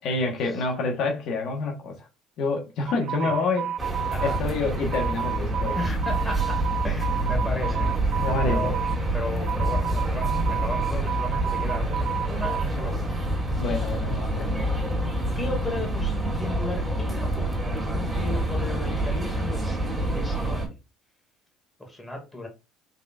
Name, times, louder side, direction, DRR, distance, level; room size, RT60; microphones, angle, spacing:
voice 1, 0.0-2.1 2.4-3.7 4.2-5.8 8.1-8.7 13.6-14.5, left 3 dB, 60° left, 1.2 m, -27 dB
sound 1, 2.9-12.8, right 9 dB, 60° right, 0.8 m, -32 dB
sound 2, 3.8-20.7, right 1 dB, 10° right, 2.6 m, -27 dB
voice 2, 5.8-7.9 8.4-8.8 9.1-13.1 15.3-20.7 21.8-22.5, left 1 dB, 10° left, 2.1 m, -35 dB
5.4 x 3.9 x 2.4 m
cardioid pair, 120°, 0 cm